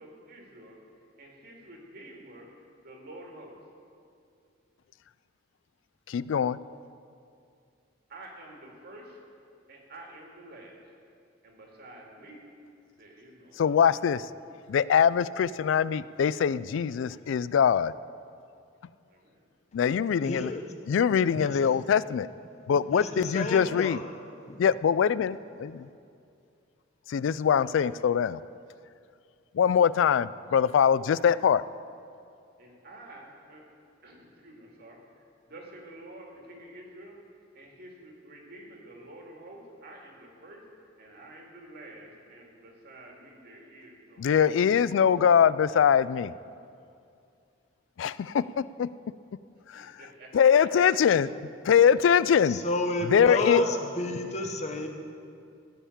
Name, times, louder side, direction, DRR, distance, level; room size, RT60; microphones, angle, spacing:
voice 1, 0.0-2.5 2.8-3.7 8.1-9.2 9.7-10.8 11.4-12.4 13.0-14.1 19.1-19.4 22.9-23.1 32.6-33.6 34.0-44.6 49.7-51.0, right 1 dB, 55° right, 0 dB, 2.3 m, -49 dB
voice 2, 6.1-6.6 13.6-14.3 14.7-17.9 19.7-20.5 20.9-22.3 22.7-24.0 24.6-25.9 27.1-28.4 29.5-31.6 44.2-46.3 48.0-48.9 49.7-49.9 50.3-51.3 51.7-52.6 53.1-53.6, left 7 dB, 70° left, 18 dB, 0.3 m, -23 dB
voice 3, 20.2-20.6 21.3-21.6 22.9-24.1 24.5-24.6 52.5-54.9, left 2 dB, 35° left, 4 dB, 1.0 m, -31 dB
15.5 x 5.7 x 8.5 m, 2.4 s
head